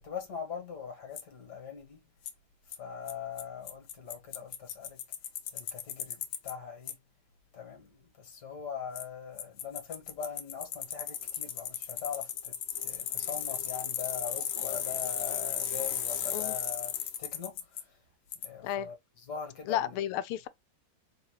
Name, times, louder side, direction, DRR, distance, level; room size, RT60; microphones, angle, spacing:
voice 1, 0.0-2.0 2.8-5.0 5.5-7.0 7.5-12.6 12.8-16.9 17.2-17.9 18.4-18.9 19.3-20.0, left 7 dB, 55° left, 2.0 m, -41 dB
Bicycle, 1.2-1.3 2.3-2.4 2.7-2.8 3.1-3.2 3.4-3.5 3.7-6.5 6.9-7.0 9.0-9.1 9.4-17.8 18.3-18.5, left 9 dB, 70° left, 1.4 m, -35 dB
voice 2, 19.7-20.5, left 11 dB, 90° left, 1.5 m, -32 dB
4.3 x 2.8 x 3.0 m
omnidirectional pair, 2.4 m